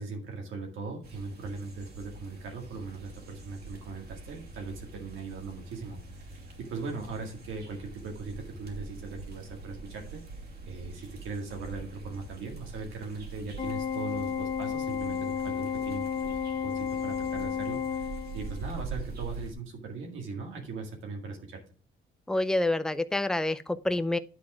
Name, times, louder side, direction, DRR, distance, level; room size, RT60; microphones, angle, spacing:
voice 1, 0.0-10.2 10.7-16.3 16.6-21.6, right 4 dB, 80° right, 1.9 m, -39 dB
sound 1, 1.0-19.5, right 3 dB, 55° right, 2.6 m, -44 dB
Organ, 13.6-18.6, left 7 dB, 35° left, 1.1 m, -32 dB
voice 2, 22.3-24.2, left 2 dB, 5° left, 0.5 m, -27 dB
9.9 x 3.7 x 6.0 m
cardioid pair, 90°, 20 cm